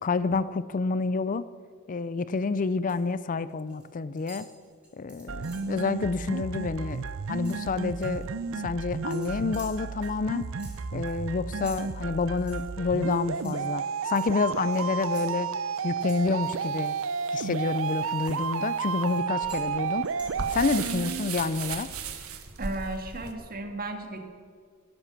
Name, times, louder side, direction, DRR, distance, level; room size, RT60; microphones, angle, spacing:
voice 1, 0.0-1.5 1.9-4.5 5.0-10.5 10.9-15.5 15.8-17.0 17.3-20.1 20.5-21.9, left 4 dB, 40° left, 16 dB, 0.4 m, -28 dB
sound 1, 2.4-3.1 3.4-3.9 4.2-5.8 6.2-6.3 6.6-8.3 9.1-17.3 17.7-21.3, right 1 dB, 5° right, 5.0 m, -52 dB
sound 2, 5.3-21.3, right 5 dB, 65° right, 0.6 m, -32 dB
sound 3, 16.4-23.3, right 5 dB, 85° right, 1.6 m, -39 dB
voice 2, 22.6-24.2, right 2 dB, 45° right, 5 dB, 1.9 m, -34 dB
19.0 x 11.0 x 6.7 m, 2.1 s
head